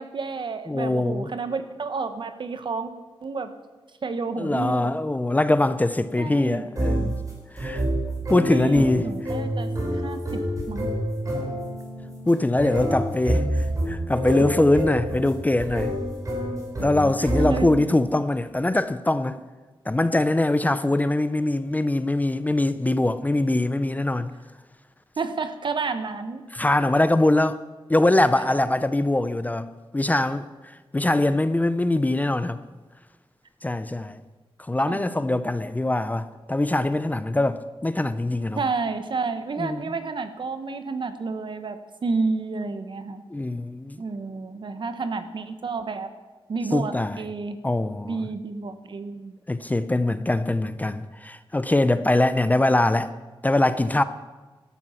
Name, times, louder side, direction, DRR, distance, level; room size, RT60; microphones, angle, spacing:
voice 1, 0.0-2.9 3.2-3.5 4.0-4.9 6.2-6.7 8.5-9.7 10.0-10.9 17.2-17.9 25.2-26.4 34.9-35.3 38.6-43.2 44.0-46.1 46.5-47.6 48.0-49.4, right 4 dB, 55° right, 1.2 m, -30 dB
voice 2, 0.7-1.3 4.4-7.2 7.5-7.8 8.3-9.1 12.3-13.4 13.9-16.0 16.8-19.4 19.9-24.3 26.5-27.6 27.9-30.5 30.9-32.6 33.6-34.2 34.7-38.6 39.6-39.8 43.3-44.0 46.7-47.2 47.6-48.2 49.5-53.1 53.4-54.0, left 2 dB, 15° left, 0.5 m, -22 dB
sound 1, 6.8-17.9, right 1 dB, 35° right, 5.1 m, -28 dB
13.5 x 12.5 x 5.8 m
wide cardioid pair, 105°, 10 cm